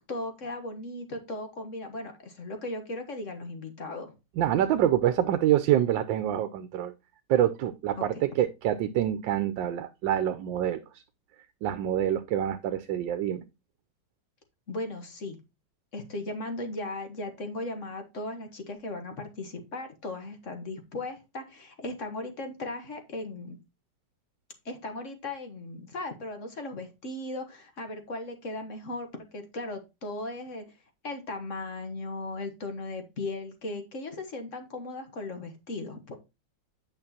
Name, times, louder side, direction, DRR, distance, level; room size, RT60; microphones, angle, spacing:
voice 1, 0.1-4.1 8.0-8.1 14.7-15.4 15.9-23.6 24.6-30.6 31.0-36.1, left 2 dB, 45° left, 6 dB, 1.4 m, -37 dB
voice 2, 4.4-6.9 7.3-10.8 11.6-13.4, right 11 dB, 90° right, 10 dB, 1.4 m, -26 dB
8.7 x 6.0 x 2.8 m, 0.25 s
omnidirectional pair, 2.0 m